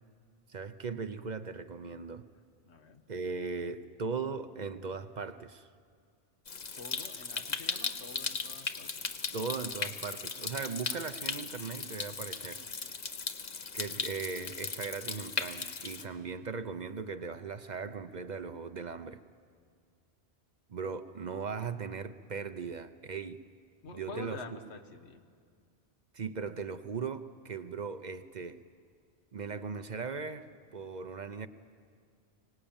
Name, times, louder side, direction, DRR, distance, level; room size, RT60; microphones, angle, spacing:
voice 1, 0.5-2.2 3.1-5.7 9.3-12.6 13.7-19.2 20.7-23.4 23.9-24.6 26.1-28.6 29.3-31.5, right 5 dB, 45° right, 11 dB, 0.7 m, -38 dB
voice 2, 2.6-3.0 6.8-9.1 23.8-25.2, left 3 dB, 85° left, 5 dB, 1.6 m, -47 dB
Stream, 6.5-16.0, left 5 dB, 45° left, 0.9 m, -37 dB
23.5 x 18.5 x 8.8 m, 2.1 s
omnidirectional pair, 1.1 m